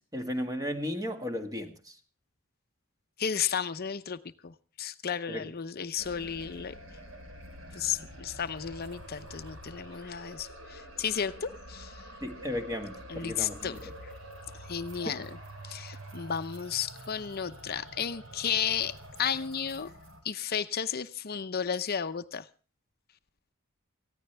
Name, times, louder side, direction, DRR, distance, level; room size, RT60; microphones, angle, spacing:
voice 1, 0.1-1.7 5.3-5.4 12.2-13.7 15.1-15.2, left 1 dB, 20° right, 6 dB, 1.8 m, -34 dB
voice 2, 3.2-6.7 7.7-12.0 13.1-13.9 14.7-15.4 15.6-19.9 20.2-22.5, left 7 dB, 50° left, 11 dB, 0.7 m, -33 dB
sound 1, 6.0-20.2, right 1 dB, 75° right, 3.8 m, -47 dB
19.5 x 15.0 x 3.4 m, 0.36 s
head